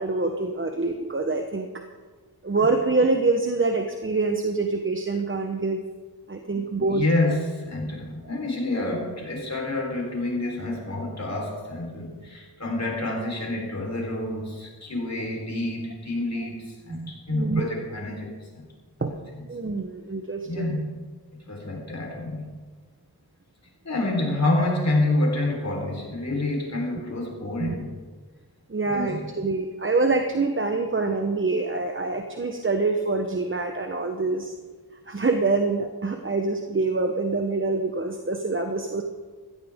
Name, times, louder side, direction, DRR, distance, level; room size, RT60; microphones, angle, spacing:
voice 1, 0.0-1.8 2.4-5.8 6.3-7.0 10.4-10.5 16.9-17.7 19.0-19.2 19.5-20.7 27.6-27.8 28.7-34.5 35.1-39.0, right 3 dB, 35° right, 5 dB, 1.1 m, -25 dB
voice 2, 6.5-18.7 19.0-19.2 20.4-20.8 21.3-22.5 23.8-27.9 28.9-29.2, left 2 dB, 45° left, -1 dB, 4.2 m, -28 dB
16.0 x 14.5 x 3.7 m, 1.4 s
wide cardioid pair, 70°, 37 cm